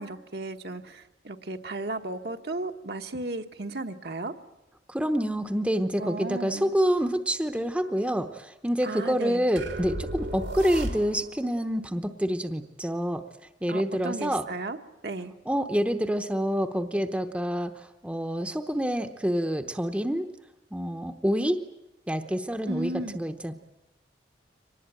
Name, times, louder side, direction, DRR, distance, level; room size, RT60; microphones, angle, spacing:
voice 1, 0.0-4.3 6.0-6.7 8.8-9.4 13.7-14.8 15.0-15.3 22.7-23.2, right 2 dB, 60° right, 5 dB, 1.2 m, -34 dB
voice 2, 4.9-13.3 13.6-14.5 15.5-20.3 20.7-21.6 22.1-23.5, equal, 5° right, 8 dB, 0.9 m, -27 dB
sound 1, 9.6-11.4, right 1 dB, 90° right, 3.4 m, -34 dB
24.5 x 19.5 x 8.9 m, 0.96 s
head